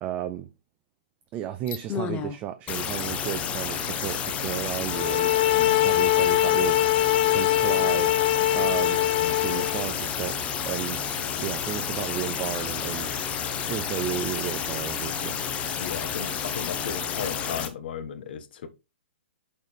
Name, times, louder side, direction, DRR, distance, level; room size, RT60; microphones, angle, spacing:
voice 1, 0.0-0.5 1.3-6.9 7.3-8.1 8.5-9.0 9.3-10.4 10.6-13.2 13.7-15.4, right 11 dB, 25° right, 0.5 m, -33 dB
sound 1, 1.7-2.4 2.7-17.7, left 7 dB, 20° left, 0.9 m, -30 dB
sound 2, 4.9-9.9, left 15 dB, 40° left, 0.6 m, -22 dB
voice 2, 5.5-5.9 9.2-9.8 15.8-18.7, left 7 dB, 60° left, 1.2 m, -36 dB
8.7 x 4.2 x 3.4 m
hypercardioid pair, 135°, 6 cm